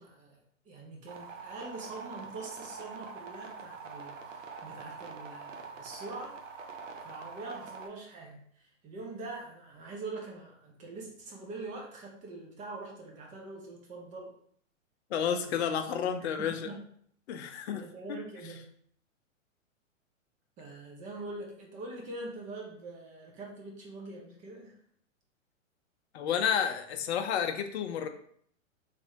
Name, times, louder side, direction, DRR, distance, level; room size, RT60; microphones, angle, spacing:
voice 1, 0.0-6.4 7.0-14.3 15.3-15.5 16.0-16.8 17.7-18.6 20.6-24.8, right 2 dB, 20° right, -1 dB, 0.5 m, -44 dB
sound 1, 1.1-7.9, right 5 dB, 70° right, 0.7 m, -45 dB
voice 2, 15.1-16.7 17.3-17.8 18.1-18.2 26.1-28.1, left 8 dB, 55° left, 7 dB, 0.6 m, -31 dB
3.2 x 3.0 x 2.7 m, 0.63 s
hypercardioid pair, 115°, 40 cm